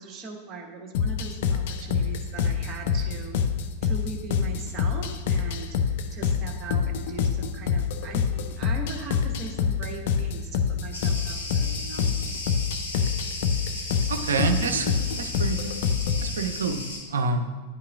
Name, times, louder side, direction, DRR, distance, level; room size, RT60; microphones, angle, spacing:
voice 1, 0.0-3.4 3.8-5.8 6.1-12.1, right 4 dB, 25° right, 1 dB, 1.4 m, -40 dB
sound 1, 0.9-16.3, left 6 dB, 50° left, 0.6 m, -26 dB
Cricket, 10.9-17.0, left 2 dB, 80° left, 2.1 m, -35 dB
voice 2, 14.1-15.9 16.2-17.5, right 4 dB, 65° right, 7 dB, 0.7 m, -28 dB
10.5 x 8.4 x 2.4 m, 1.4 s
figure-of-eight pair, 90°, 0 cm